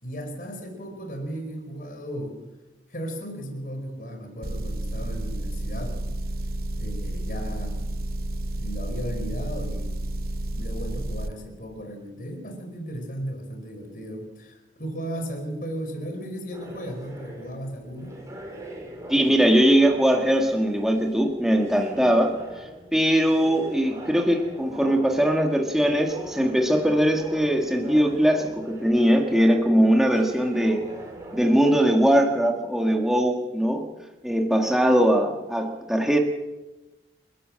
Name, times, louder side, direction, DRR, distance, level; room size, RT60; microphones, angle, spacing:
voice 1, 0.0-2.4 2.9-6.0 6.8-7.8 8.5-9.9 10.5-18.2, equal, 50° left, 4 dB, 4.6 m, -35 dB
Motor vehicle (road) / Engine, 4.4-11.3, right 1 dB, 55° right, 0.9 m, -31 dB
sound 1, 16.5-31.6, right 1 dB, 20° right, 3.9 m, -42 dB
voice 2, 19.1-22.4 22.9-30.9 31.3-33.9 34.2-36.2, equal, ahead, 2 dB, 1.7 m, -21 dB
29.0 x 13.0 x 7.6 m, 1.1 s
head